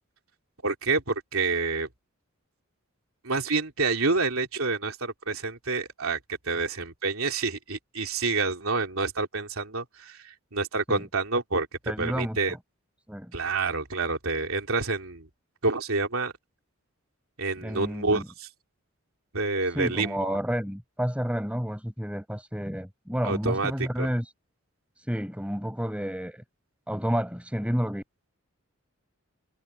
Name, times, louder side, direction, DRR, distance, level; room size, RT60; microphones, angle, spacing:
voice 1, 0.6-1.9 3.2-11.7 12.0-12.5 13.3-15.3 15.6-16.3 17.4-18.5 19.3-20.4 23.2-24.1, right 3 dB, 70° right, 3.3 m, -28 dB
voice 2, 11.9-12.6 13.1-13.3 17.6-18.3 19.7-24.3 25.0-26.4 26.9-28.0, equal, 5° right, 6.5 m, -30 dB
head